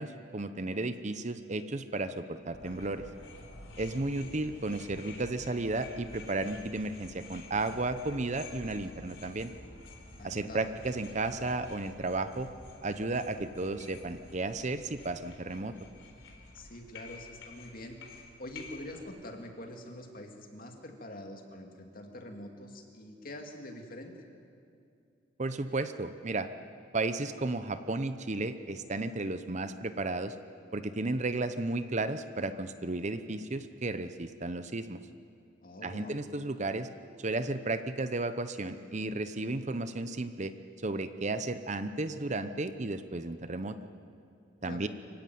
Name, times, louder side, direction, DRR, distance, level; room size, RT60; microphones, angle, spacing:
voice 1, 0.0-3.1 3.8-9.5 10.2-12.5 12.8-15.7 25.4-26.5 26.9-30.3 30.7-35.0 35.8-36.9 37.2-40.5 40.8-43.9 44.6-44.9, right 2 dB, 35° right, 11 dB, 0.8 m, -33 dB
sound 1, 2.5-19.1, left 2 dB, 85° left, 4.0 m, -50 dB
voice 2, 10.2-10.7 16.5-24.2 35.6-36.2 44.6-44.9, left 1 dB, 45° left, 3 dB, 2.5 m, -45 dB
24.5 x 16.0 x 9.5 m, 2.5 s
head